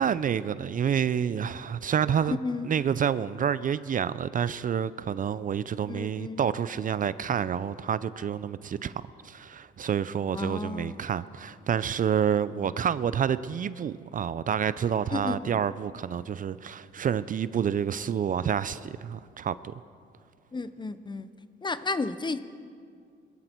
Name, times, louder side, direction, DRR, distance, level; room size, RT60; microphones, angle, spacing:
voice 1, 0.0-2.4 2.6-8.9 9.2-19.7, right 8 dB, 45° right, 0.5 m, -28 dB
voice 2, 2.3-2.7 5.9-6.4 10.3-11.0 15.1-15.6 20.5-21.3 21.6-22.4, left 3 dB, 20° left, 0.8 m, -32 dB
22.0 x 14.0 x 4.5 m
cardioid pair, 90°, 20 cm